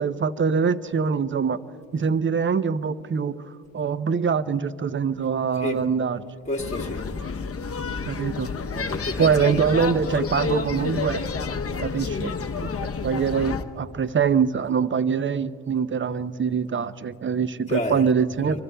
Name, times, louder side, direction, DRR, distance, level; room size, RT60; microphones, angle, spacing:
voice 1, 0.0-1.6 1.9-3.3 3.7-6.2 8.1-8.5 9.2-11.2 11.8-18.6, right 6 dB, 30° right, 15 dB, 0.6 m, -24 dB
voice 2, 6.5-7.0 8.7-9.6 17.7-18.0 18.4-18.6, left 1 dB, 20° left, 1 dB, 2.0 m, -30 dB
sound 1, 6.6-13.6, left 5 dB, 40° left, 0.8 m, -30 dB
25.5 x 24.5 x 2.2 m, 2.3 s
supercardioid pair, 55°, 38 cm